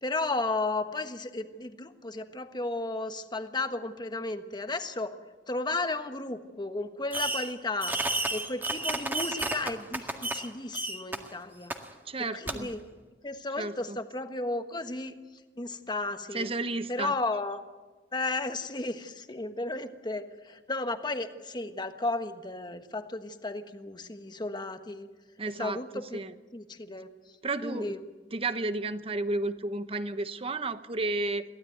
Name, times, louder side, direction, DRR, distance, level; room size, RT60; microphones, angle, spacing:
voice 1, 0.0-5.1 5.5-8.0 8.3-11.7 12.3-12.9 13.2-15.2 15.6-16.5 16.9-17.6 18.1-25.1 25.6-26.2 26.5-27.1 27.6-28.0, left 2 dB, 25° left, 8 dB, 1.4 m, -34 dB
Fireworks, 7.1-7.5 7.8-10.5 10.7-11.2 11.7-11.8 12.5-12.6, right 2 dB, 10° right, 1.9 m, -31 dB
voice 2, 12.1-12.7 13.6-14.0 16.3-17.1 25.4-25.8 26.1-26.3 27.4-27.9 28.3-31.4, right 2 dB, 35° right, 11 dB, 1.1 m, -32 dB
23.0 x 16.0 x 9.3 m, 1.3 s
head